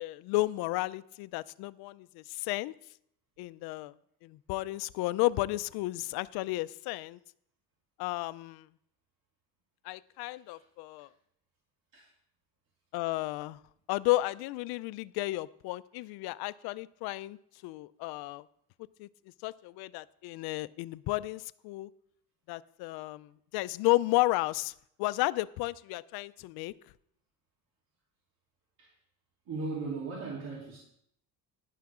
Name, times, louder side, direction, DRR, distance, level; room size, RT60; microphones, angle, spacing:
voice 1, 0.0-2.7 3.4-3.9 4.2-7.2 8.0-8.7 9.8-11.1 12.9-13.6 13.9-17.4 17.6-18.4 19.0-19.1 19.4-21.9 22.5-24.7 25.0-26.7, left 19 dB, 85° left, 17 dB, 0.5 m, -32 dB
voice 2, 10.3-10.6 11.0-11.1 11.9-12.1 28.8-28.9 29.4-30.8, right 3 dB, 65° right, -5 dB, 3.5 m, -38 dB
11.5 x 11.0 x 3.7 m, 0.70 s
cardioid pair, 115°, 37 cm